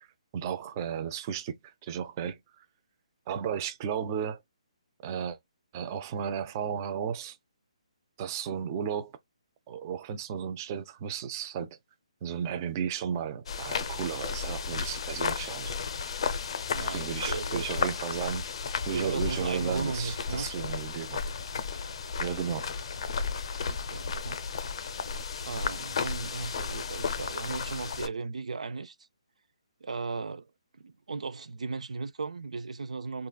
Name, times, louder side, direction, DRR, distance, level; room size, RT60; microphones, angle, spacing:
voice 1, 0.3-2.4 3.3-4.4 5.0-5.4 5.7-7.4 8.2-9.1 9.7-11.7 12.2-15.8 16.9-18.4 18.9-21.2 22.2-22.7, right 8 dB, 30° right, 0.5 m, -34 dB
sound 1, 13.5-28.1, left 5 dB, 55° left, 0.5 m, -33 dB
voice 2, 16.7-17.7 18.9-20.5 23.5-24.4 25.4-29.0 29.8-30.5 30.8-33.3, right 4 dB, 80° right, 0.5 m, -36 dB
3.8 x 2.4 x 2.3 m
hypercardioid pair, 155°, 4 cm